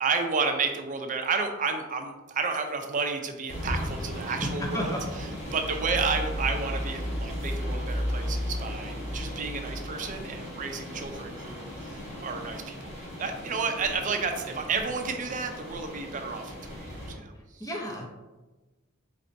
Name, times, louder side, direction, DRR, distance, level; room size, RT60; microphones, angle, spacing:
voice 1, 0.0-4.9 5.5-12.9 13.2-17.3, right 5 dB, 40° right, 5 dB, 0.5 m, -31 dB
sound 1, 3.5-17.1, equal, 35° left, 1.4 m, -35 dB
voice 2, 4.6-5.0 17.6-18.1, equal, 15° left, 0 dB, 0.7 m, -32 dB
4.2 x 4.1 x 2.6 m, 1.2 s
head